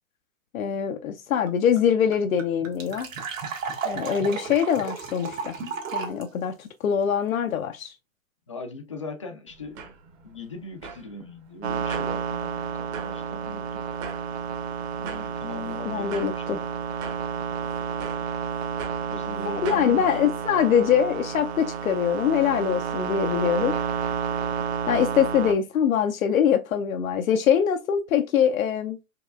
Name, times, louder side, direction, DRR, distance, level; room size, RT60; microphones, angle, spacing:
voice 1, 0.5-3.1 3.8-5.6 5.9-7.9 15.8-16.6 19.4-23.7 24.9-29.0, left 8 dB, 80° left, 0.6 m, -23 dB
sound 1, 1.5-1.6 1.7-1.8 2.1-6.2, right 5 dB, 70° right, 1.5 m, -33 dB
voice 2, 8.5-9.9 10.2-13.9 15.0-16.5 19.1-20.1, left 2 dB, 25° left, 0.3 m, -40 dB
sound 2, 9.5-19.9, right 5 dB, 20° right, 0.7 m, -44 dB
sound 3, 11.6-25.5, right 7 dB, 50° right, 0.8 m, -30 dB
4.6 x 3.0 x 2.4 m
hypercardioid pair, 140°, 40 cm